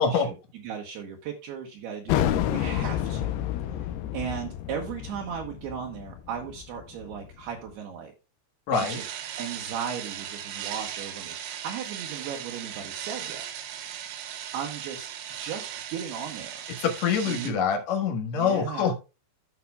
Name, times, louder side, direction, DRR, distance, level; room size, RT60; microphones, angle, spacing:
voice 1, 0.0-3.3 3.7-8.1 8.7-9.1 9.4-13.5 14.5-16.6 17.2-17.6 18.3-18.9, right 8 dB, 70° right, 0 dB, 2.8 m, -36 dB
sound 1, 2.1-7.4, left 11 dB, 80° left, 2.4 m, -29 dB
voice 2, 8.7-9.0 16.8-19.0, left 6 dB, 60° left, 4 dB, 1.8 m, -25 dB
sound 2, 8.7-17.5, right 10 dB, 90° right, 3.5 m, -37 dB
14.0 x 5.8 x 2.3 m, 0.29 s
omnidirectional pair, 5.3 m